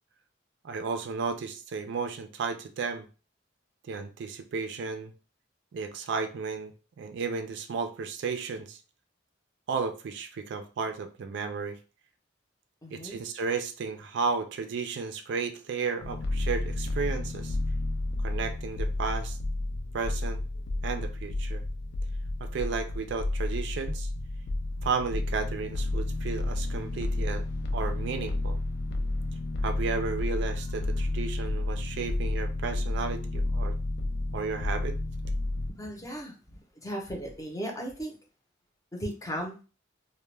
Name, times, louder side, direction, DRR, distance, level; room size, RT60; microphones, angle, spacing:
voice 1, 0.6-3.1 3.9-5.1 5.7-8.8 9.7-11.8 12.9-17.6 18.2-19.4 19.9-20.4 20.8-21.6 22.4-24.1 24.8-27.4 27.7-28.6 29.6-33.8 34.3-35.0, right 5 dB, 65° right, 7 dB, 0.4 m, -33 dB
voice 2, 12.8-13.2 35.7-38.1 39.0-39.6, equal, 15° left, 1 dB, 0.6 m, -36 dB
sound 1, 16.0-35.7, left 2 dB, 65° left, 0.4 m, -31 dB
2.2 x 2.1 x 3.1 m, 0.34 s
head